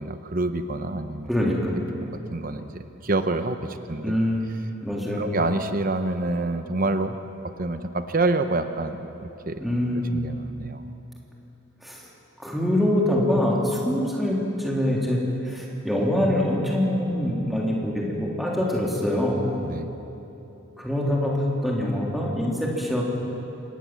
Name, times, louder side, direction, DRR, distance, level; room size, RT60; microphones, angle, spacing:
voice 1, 0.0-1.3 2.3-4.1 5.2-7.2 7.6-9.6 10.1-10.9 19.6-19.9, right 2 dB, 40° right, 9 dB, 0.9 m, -27 dB
voice 2, 1.3-1.8 4.0-4.5 4.8-5.3 9.6-10.2 11.8-12.0 12.4-19.4 20.8-23.0, left 1 dB, ahead, -3 dB, 3.3 m, -24 dB
26.0 x 19.5 x 7.6 m, 2.9 s
head